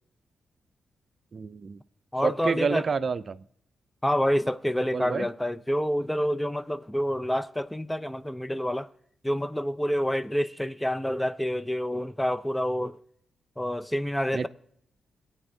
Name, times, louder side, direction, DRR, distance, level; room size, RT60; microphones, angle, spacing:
voice 1, 1.3-1.8 2.2-3.4 4.9-5.3 14.3-14.5, right 5 dB, 50° right, 0.4 m, -28 dB
voice 2, 2.1-2.9 4.0-8.9 9.2-13.0 13.6-14.5, equal, 10° left, 0.5 m, -28 dB
17.0 x 8.8 x 2.7 m
supercardioid pair, 50°, 0 cm